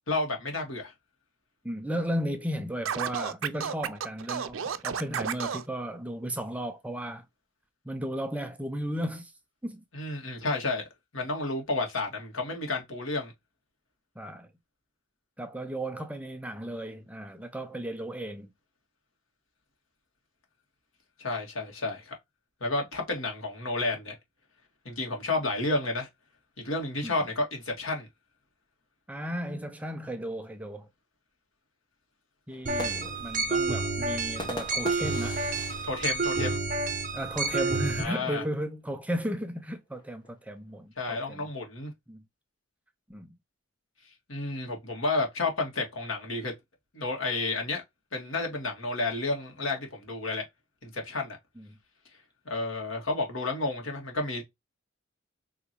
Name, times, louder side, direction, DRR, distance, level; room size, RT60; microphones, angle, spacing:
voice 1, 0.1-0.9 9.9-10.9 11.1-13.3 21.2-22.1 22.6-24.1 24.9-26.1 26.6-28.1 35.8-36.6 38.0-38.4 41.0-41.9 44.3-46.5 46.9-47.8 48.1-50.5 50.8-51.4 52.5-54.4, left 2 dB, 85° left, 1.9 m, -31 dB
voice 2, 1.6-7.2 7.8-9.3 9.6-9.8 10.1-10.2 14.2-14.5 15.4-18.5 27.0-27.1 29.1-30.9 32.5-35.4 37.1-41.5 42.1-42.2 43.1-43.4 51.6-51.7, equal, 5° right, 0.5 m, -35 dB
Scratching (performance technique), 2.8-5.6, right 7 dB, 85° right, 0.5 m, -32 dB
sound 1, 32.5-37.1 37.5-37.6 37.9-38.4 39.2-40.8, left 1 dB, 20° left, 1.0 m, -43 dB
sound 2, 32.7-38.0, right 3 dB, 40° right, 0.8 m, -29 dB
4.7 x 3.0 x 2.9 m
head